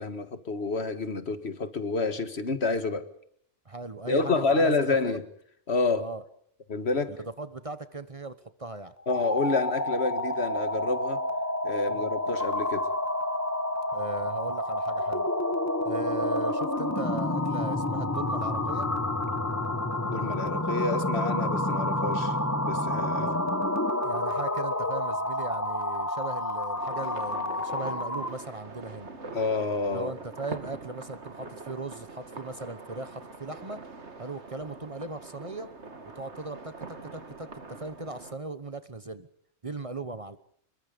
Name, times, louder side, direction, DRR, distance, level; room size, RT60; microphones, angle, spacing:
voice 1, 0.0-3.1 4.1-5.2 5.7-6.1 6.7-7.2 9.1-11.2 11.6-12.9 20.0-22.4 22.6-23.3 29.3-30.1, left 3 dB, 65° left, 1.9 m, -28 dB
voice 2, 3.6-4.7 5.0-5.2 6.0-6.2 7.1-8.9 11.9-12.1 13.9-15.3 15.8-18.9 23.1-23.4 24.0-29.1 29.9-33.8 34.2-35.7 36.2-39.3 39.6-40.4, right 3 dB, 30° right, 1.0 m, -38 dB
sound 1, 9.0-28.4, left 1 dB, 15° left, 1.5 m, -29 dB
sound 2, 26.8-38.3, right 3 dB, 70° right, 2.3 m, -43 dB
26.5 x 22.0 x 5.2 m
omnidirectional pair, 1.2 m